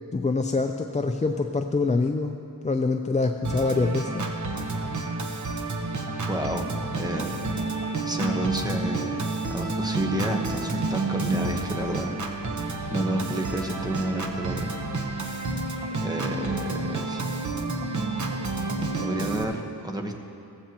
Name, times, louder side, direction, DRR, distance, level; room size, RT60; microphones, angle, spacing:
voice 1, 0.1-4.2, left 3 dB, 20° left, 5 dB, 0.3 m, -25 dB
Organ, 3.4-19.4, right 3 dB, 45° right, 1.0 m, -30 dB
voice 2, 6.3-6.7 7.0-7.5 8.0-9.2 9.5-12.1 12.9-14.7 16.0-17.2 19.0-20.2, right 1 dB, 10° right, 2 dB, 1.0 m, -30 dB
16.0 x 15.0 x 2.9 m, 2.7 s
wide cardioid pair, 115°, 40 cm